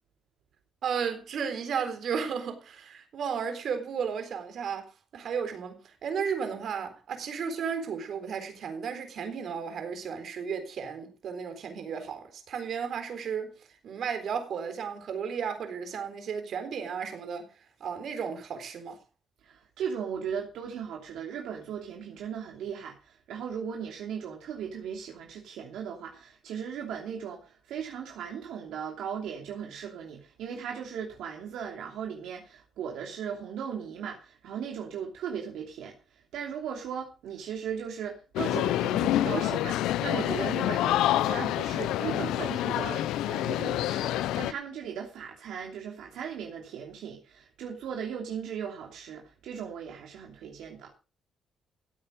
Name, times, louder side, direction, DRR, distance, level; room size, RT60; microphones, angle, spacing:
voice 1, 0.8-17.5 17.8-19.0, right 6 dB, 65° right, 3.9 m, -34 dB
voice 2, 19.4-50.9, right 7 dB, 85° right, 2.9 m, -37 dB
sound 1, 38.4-44.5, left 13 dB, 90° left, 0.6 m, -27 dB
15.5 x 8.8 x 5.2 m
cardioid pair, 90°, 0 cm